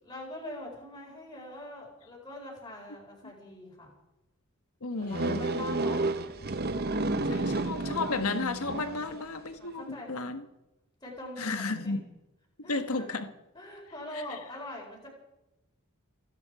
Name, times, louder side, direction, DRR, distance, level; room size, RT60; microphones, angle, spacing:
voice 1, 0.0-3.9 5.0-6.0 8.9-9.1 9.6-10.3 11.0-12.0 12.6-13.1 13.5-15.1, left 1 dB, 20° left, 4.5 m, -43 dB
voice 2, 4.8-5.6 7.2-10.5 11.4-12.1 12.7-13.3 14.1-14.4, left 3 dB, 85° left, 1.3 m, -33 dB
sound 1, 5.1-9.2, right 2 dB, 45° right, 0.9 m, -31 dB
29.0 x 9.8 x 4.8 m
head